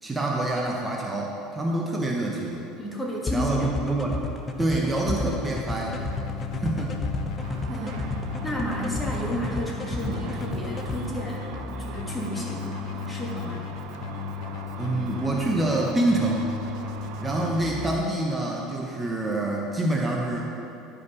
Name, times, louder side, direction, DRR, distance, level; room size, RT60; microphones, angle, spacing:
voice 1, 0.0-2.7 3.3-4.3 4.6-6.0 6.6-7.0 14.8-16.5 17.2-20.4, right 2 dB, 15° right, -1 dB, 0.9 m, -26 dB
voice 2, 2.8-3.7 7.7-8.1 8.4-13.7, equal, 10° left, -3 dB, 1.8 m, -32 dB
sound 1, 3.3-11.0, left 3 dB, 25° left, 0.7 m, -31 dB
Keyboard (musical), 5.9-17.9, left 7 dB, 60° left, 0.7 m, -36 dB
Car / Traffic noise roadway noise / Engine, 7.4-17.9, right 7 dB, 65° right, 0.6 m, -41 dB
11.0 x 5.0 x 4.9 m, 2.8 s
supercardioid pair, 110°, 0 cm